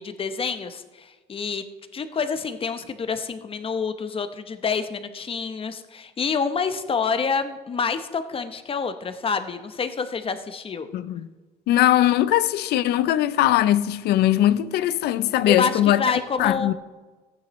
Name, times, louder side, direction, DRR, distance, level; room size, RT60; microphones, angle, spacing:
voice 1, 0.0-1.6 1.9-10.9 15.4-16.7, left 5 dB, 35° left, 0.8 m, -27 dB
voice 2, 10.9-11.3 11.7-16.0 16.4-16.7, left 13 dB, 75° left, 0.5 m, -20 dB
14.5 x 9.9 x 3.1 m
cardioid pair, 110°, 17 cm